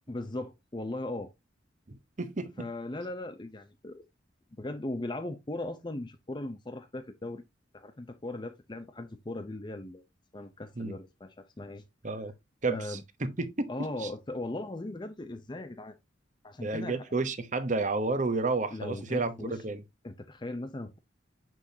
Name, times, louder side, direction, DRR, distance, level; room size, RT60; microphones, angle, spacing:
voice 1, 0.1-1.3 2.6-4.0 4.6-7.4 7.7-10.0 10.3-11.8 12.7-13.0 13.7-16.0 16.4-17.1 18.7-19.6 20.0-21.0, left 2 dB, 25° left, 0.6 m, -38 dB
voice 2, 1.9-2.7 10.8-11.0 12.0-12.3 12.6-14.1 16.6-19.8, right 3 dB, 40° right, 0.9 m, -31 dB
7.0 x 6.1 x 2.7 m
head